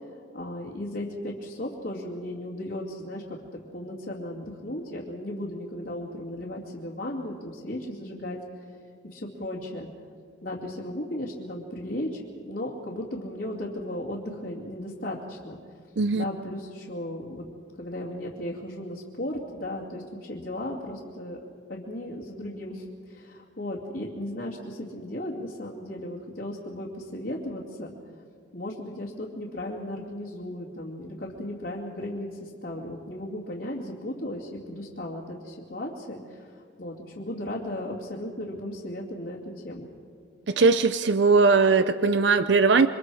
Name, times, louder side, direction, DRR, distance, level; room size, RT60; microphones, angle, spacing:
voice 1, 0.3-8.4 9.0-9.9 10.4-15.6 16.1-17.4 17.8-21.4 21.7-27.9 28.5-39.9, left 1 dB, 55° left, -5 dB, 2.5 m, -36 dB
voice 2, 40.5-42.9, right 4 dB, 60° right, 11 dB, 0.5 m, -20 dB
27.5 x 25.0 x 4.9 m, 2.2 s
head